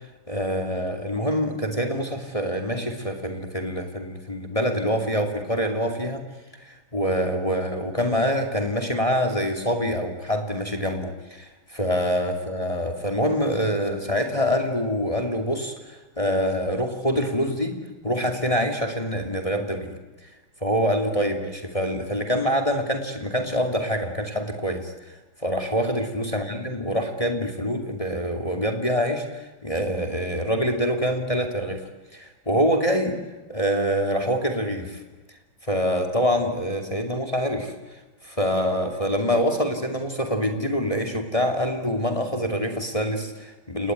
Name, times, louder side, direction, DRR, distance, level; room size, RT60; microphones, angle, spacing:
voice 1, 0.3-6.2 6.6-17.7 18.0-19.9 20.6-24.9 25.4-31.8 32.1-33.2 33.5-35.0 35.7-37.7 38.2-43.9, equal, 15° left, 5 dB, 2.6 m, -25 dB
28.5 x 20.5 x 9.4 m, 1.1 s
omnidirectional pair, 2.3 m